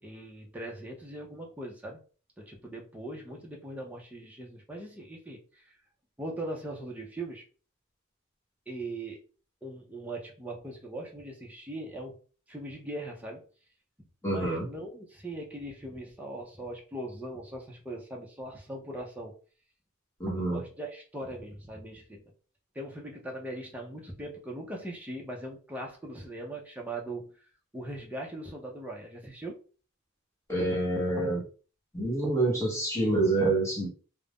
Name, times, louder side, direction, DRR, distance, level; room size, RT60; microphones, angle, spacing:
voice 1, 0.0-2.0 2.4-5.8 6.2-7.4 8.7-9.2 9.6-12.2 12.5-13.4 14.2-19.3 20.3-22.2 22.7-27.5 27.7-29.6, right 1 dB, 5° right, 0.5 m, -40 dB
voice 2, 14.2-14.7 20.2-20.6 30.5-31.4 31.9-33.9, right 2 dB, 15° left, 1.0 m, -27 dB
2.4 x 2.0 x 3.4 m
head